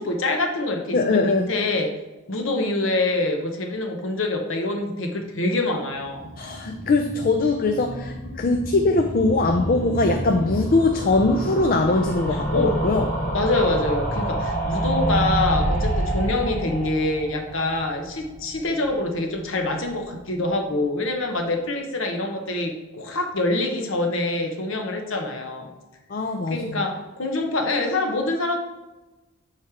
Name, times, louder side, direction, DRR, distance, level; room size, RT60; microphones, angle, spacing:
voice 1, 0.0-1.9 2.3-6.2 12.3-12.7 13.3-25.7 26.5-28.6, left 2 dB, 60° left, 3 dB, 1.0 m, -25 dB
voice 2, 0.9-1.5 6.4-13.1 26.1-26.8, left 3 dB, 40° left, 5 dB, 0.4 m, -21 dB
sound 1, 6.0-19.0 19.3-19.4 19.6-19.7 19.9-20.0, right 1 dB, 10° left, 2.1 m, -28 dB
8.5 x 3.2 x 4.9 m, 1.1 s
head